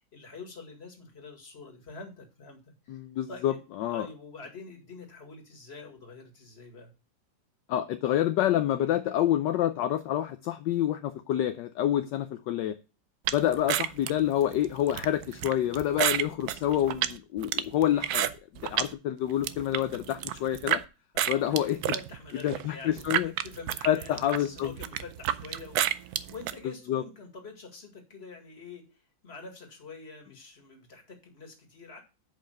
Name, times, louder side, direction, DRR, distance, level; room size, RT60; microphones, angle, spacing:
voice 1, 0.1-2.6 2.9-3.0 3.3-3.6 3.9-6.9 21.1-28.9 29.2-32.0, left 4 dB, 35° left, 3 dB, 2.2 m, -46 dB
voice 2, 2.9-4.1 7.7-12.7 13.3-18.3 18.6-20.8 21.3-21.8 22.4-23.3 23.8-24.7 26.9-27.0, left 11 dB, 75° left, 8 dB, 1.2 m, -27 dB
sound 1, 13.3-18.9 19.3-20.8 21.2-26.6, right 11 dB, 70° right, 0.9 m, -30 dB
7.5 x 5.3 x 6.4 m, 0.31 s
omnidirectional pair, 2.1 m